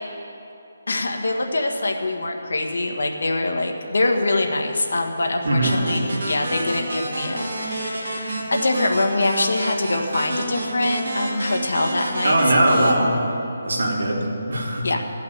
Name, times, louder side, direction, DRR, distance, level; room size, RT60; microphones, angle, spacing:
voice 1, 0.9-12.8 14.8-15.0, left 2 dB, 70° left, 3 dB, 1.4 m, -24 dB
sound 1, 5.6-12.9, right 1 dB, 50° right, 2.2 m, -29 dB
voice 2, 12.2-13.2 13.6-14.9, right 1 dB, 80° right, -1 dB, 2.6 m, -20 dB
14.0 x 5.8 x 9.2 m, 2.9 s
hypercardioid pair, 180°, 0 cm